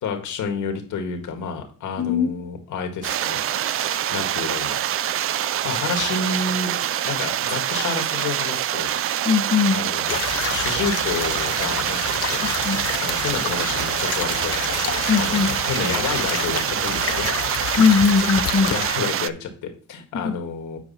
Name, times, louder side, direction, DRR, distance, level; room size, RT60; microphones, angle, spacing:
voice 1, 0.0-3.4 3.7-4.8 5.2-5.3 5.6-6.7 7.0-8.9 9.7-10.2 10.5-12.4 13.0-14.8 15.2-17.3 18.7-20.8, left 5 dB, 80° left, 4 dB, 1.9 m, -29 dB
voice 2, 2.0-2.3 9.2-9.8 12.6-12.8 15.1-15.5 17.8-18.7 20.2-20.3, left 5 dB, 35° left, 3 dB, 1.0 m, -19 dB
sound 1, 3.0-19.3, right 11 dB, 50° right, 0.4 m, -25 dB
sound 2, 10.1-18.9, left 10 dB, 55° left, 0.7 m, -29 dB
8.2 x 4.7 x 4.1 m, 0.42 s
cardioid pair, 90°, 30 cm